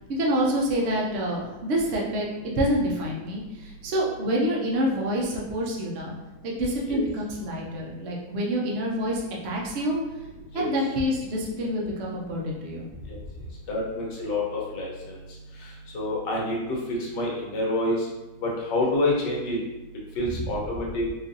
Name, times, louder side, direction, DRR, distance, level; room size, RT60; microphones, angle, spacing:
voice 1, 0.1-6.1 6.4-10.0 10.5-13.0, equal, 70° right, -2 dB, 0.6 m, -27 dB
voice 2, 13.7-15.2 15.9-18.1 18.4-19.6 20.2-21.1, left 1 dB, 70° left, -3 dB, 1.5 m, -27 dB
4.3 x 2.5 x 2.6 m, 1.0 s
omnidirectional pair, 2.0 m